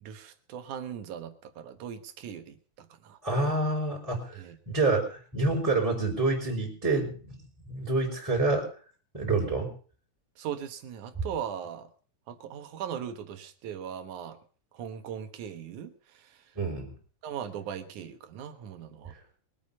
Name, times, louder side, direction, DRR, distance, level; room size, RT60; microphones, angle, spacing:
voice 1, 0.0-3.2 4.4-4.6 10.4-11.9 12.3-14.4 14.7-16.4 17.2-19.1, right 8 dB, 80° right, 2.8 m, -39 dB
voice 2, 3.2-7.4 7.6-8.7 9.1-9.7 16.5-16.9, right 2 dB, 5° right, 4.8 m, -27 dB
22.5 x 8.8 x 5.6 m
omnidirectional pair, 3.4 m